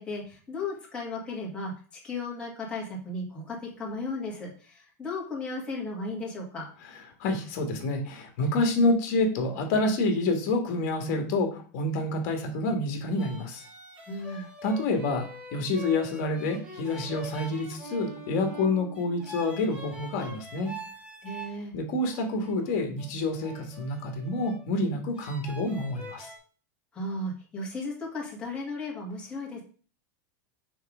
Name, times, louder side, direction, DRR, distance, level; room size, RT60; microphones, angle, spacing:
voice 1, 0.0-6.7 14.1-14.5 21.2-21.7 26.9-29.6, left 2 dB, 10° left, -4 dB, 1.9 m, -35 dB
voice 2, 7.2-13.6 14.3-20.7 21.7-26.3, left 2 dB, 50° left, 4 dB, 1.7 m, -28 dB
sound 1, 13.2-21.6 22.1-24.6 25.1-26.4, right 2 dB, 10° right, 1.2 m, -44 dB
6.2 x 3.5 x 4.9 m, 0.40 s
supercardioid pair, 165°, 9 cm